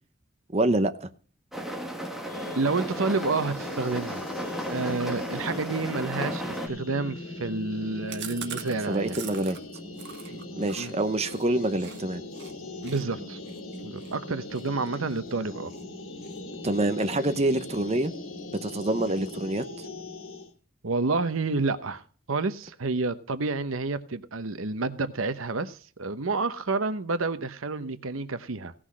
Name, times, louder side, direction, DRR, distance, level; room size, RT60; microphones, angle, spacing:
voice 1, 0.5-1.1 8.9-9.6 10.6-12.2 16.6-18.1 18.5-19.6, right 2 dB, 30° right, 0.9 m, -26 dB
sound 1, 1.5-6.7, equal, ahead, 2.0 m, -34 dB
sound 2, 2.2-20.5, left 2 dB, 80° left, 2.7 m, -40 dB
voice 2, 2.5-4.2 4.7-9.2 10.3-10.9 12.8-13.4 13.8-15.7 20.8-28.7, right 3 dB, 90° right, 0.9 m, -29 dB
Chewing mastication, 8.1-12.0 12.3-12.5 12.8-15.8 16.2-16.5 16.8-17.7 18.0-18.1 18.4-18.5 18.8-19.4, right 8 dB, 60° right, 1.7 m, -43 dB
17.0 x 6.3 x 6.2 m
head